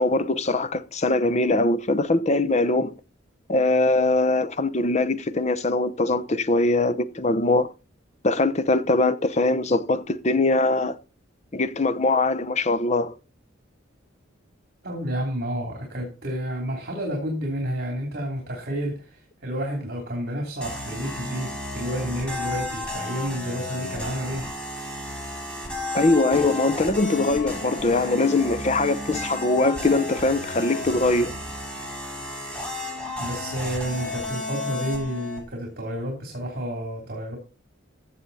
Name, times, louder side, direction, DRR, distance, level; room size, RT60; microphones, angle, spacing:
voice 1, 0.0-2.9 3.5-7.7 8.2-11.0 11.5-13.1 25.9-31.3, left 2 dB, 35° left, 0.7 m, -22 dB
voice 2, 14.8-24.5 33.2-37.4, equal, 50° right, 3.0 m, -30 dB
sound 1, 20.6-35.4, left 1 dB, 5° left, 3.7 m, -33 dB
15.0 x 6.8 x 4.1 m
head